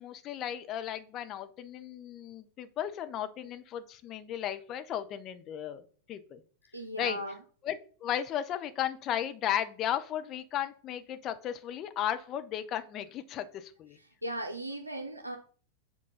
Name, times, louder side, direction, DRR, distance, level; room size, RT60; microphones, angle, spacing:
voice 1, 0.0-5.8 6.1-6.4 7.0-7.2 7.6-14.0, left 10 dB, 35° left, 9 dB, 0.8 m, -35 dB
voice 2, 6.7-7.4 13.9-15.4, right 1 dB, 85° right, 4 dB, 0.7 m, -37 dB
7.5 x 3.9 x 5.6 m, 0.43 s
figure-of-eight pair, 90°, 0 cm